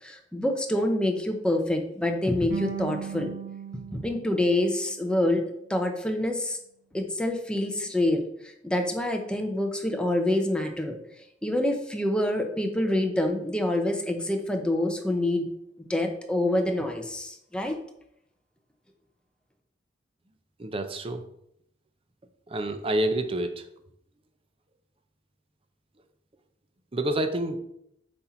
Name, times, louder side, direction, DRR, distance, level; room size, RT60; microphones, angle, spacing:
voice 1, 0.0-3.3 3.9-5.4 5.7-6.6 6.9-8.2 8.6-11.0 11.4-15.5 15.8-17.8, left 1 dB, 5° left, 3 dB, 0.8 m, -26 dB
sound 1, 2.5-5.6, right 7 dB, 55° right, 1.4 m, -38 dB
voice 2, 20.6-21.2 22.5-23.6 26.9-27.6, right 1 dB, 30° right, 8 dB, 0.7 m, -28 dB
7.8 x 4.3 x 4.4 m, 0.76 s
head